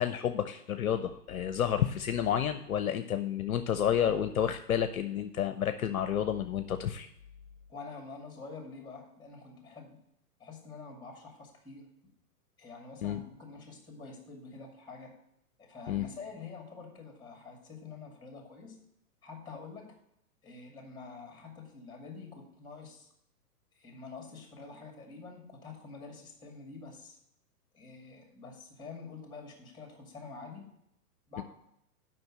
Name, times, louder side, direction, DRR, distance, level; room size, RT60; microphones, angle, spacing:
voice 1, 0.0-7.1 13.0-13.2 15.9-16.0 31.4-31.5, left 9 dB, 60° left, 9 dB, 0.7 m, -30 dB
voice 2, 7.7-10.0 10.4-11.9 12.6-15.2 15.6-18.8 19.2-19.9 20.4-23.1 23.7-27.2 27.7-30.7 31.3-31.4, left 4 dB, 10° left, 2 dB, 2.3 m, -47 dB
7.8 x 5.6 x 7.3 m, 0.77 s
figure-of-eight pair, 110°, 48 cm